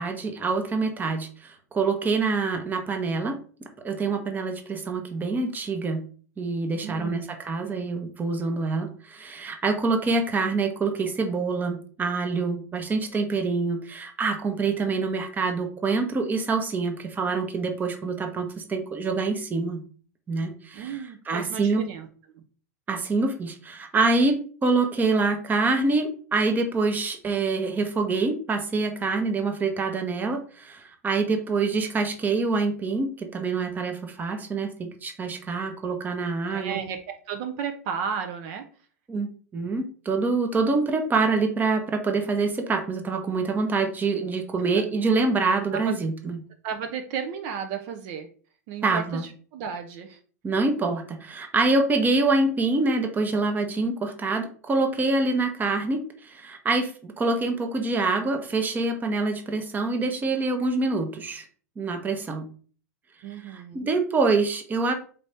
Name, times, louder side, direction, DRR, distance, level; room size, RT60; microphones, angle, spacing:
voice 1, 0.0-3.4 3.8-6.0 6.4-19.8 20.3-21.0 21.3-21.8 22.9-36.8 39.1-46.4 48.8-49.2 50.4-61.4 61.8-62.4 63.4-64.9, right 3 dB, 20° right, 5 dB, 0.8 m, -26 dB
voice 2, 6.8-7.2 20.7-22.1 22.3-22.4 36.5-37.0 37.3-38.7 45.7-45.9 46.6-48.3 48.7-50.2 63.2-63.9, right 7 dB, 55° right, 5 dB, 0.6 m, -33 dB
4.1 x 2.6 x 3.4 m, 0.42 s
hypercardioid pair, 100°, 9 cm